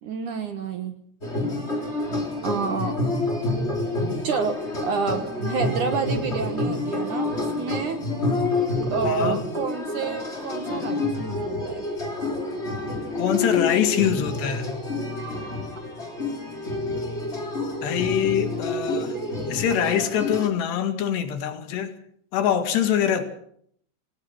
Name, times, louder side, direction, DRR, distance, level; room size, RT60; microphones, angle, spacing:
voice 1, 0.0-1.0 2.4-3.0 4.1-8.0 8.9-11.8, right 5 dB, 60° right, 8 dB, 2.4 m, -29 dB
sound 1, 1.2-20.5, left 2 dB, 15° left, 3.3 m, -28 dB
voice 2, 9.0-9.4 13.2-14.7 17.8-19.2 19.5-21.9 22.3-23.2, left 9 dB, 90° left, 7 dB, 4.3 m, -24 dB
27.0 x 18.5 x 6.4 m, 0.66 s
omnidirectional pair, 4.7 m